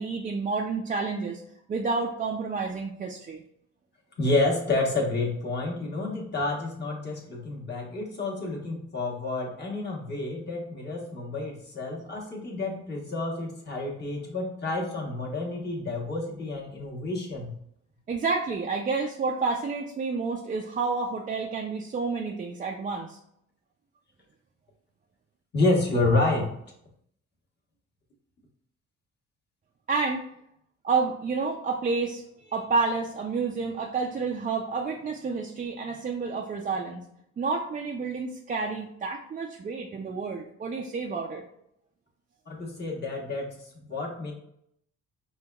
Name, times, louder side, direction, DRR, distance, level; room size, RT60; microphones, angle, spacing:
voice 1, 0.0-1.4 1.7-3.4 18.1-23.2 29.9-30.2 30.8-37.0 37.4-41.4, right 4 dB, 30° right, 0 dB, 0.4 m, -29 dB
voice 2, 4.2-17.5 25.5-26.5 42.5-43.5 43.8-44.3, left 2 dB, 35° left, -2 dB, 1.2 m, -29 dB
5.2 x 2.3 x 2.3 m, 0.73 s
cardioid pair, 90°, 30 cm